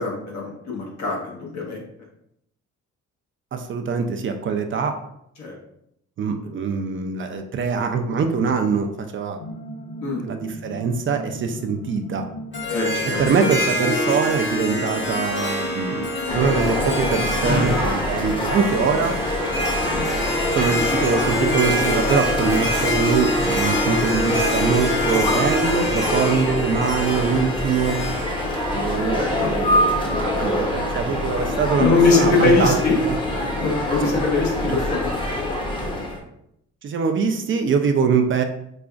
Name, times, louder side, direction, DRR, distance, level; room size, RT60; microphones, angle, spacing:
voice 1, 0.0-1.8 5.4-5.5 10.0-10.3 12.7-13.2 17.4-17.7 19.8-20.0 29.2-29.5 31.8-33.1 33.6-35.1, left 3 dB, 65° left, -2 dB, 1.3 m, -22 dB
voice 2, 3.5-5.0 6.2-9.4 10.2-12.2 13.0-16.0 16.3-19.2 20.5-28.0 28.7-32.8 33.1-33.2 34.7-34.8 36.8-38.4, right 5 dB, 40° right, 6 dB, 0.4 m, -23 dB
sound 1, 9.4-21.9, left 1 dB, 80° left, 0.7 m, -38 dB
Harp, 12.5-29.8, left 1 dB, 40° left, 1.5 m, -26 dB
sound 2, 16.3-36.2, left 1 dB, 15° left, 0.8 m, -25 dB
5.0 x 2.4 x 2.4 m, 0.75 s
cardioid pair, 90°, 30 cm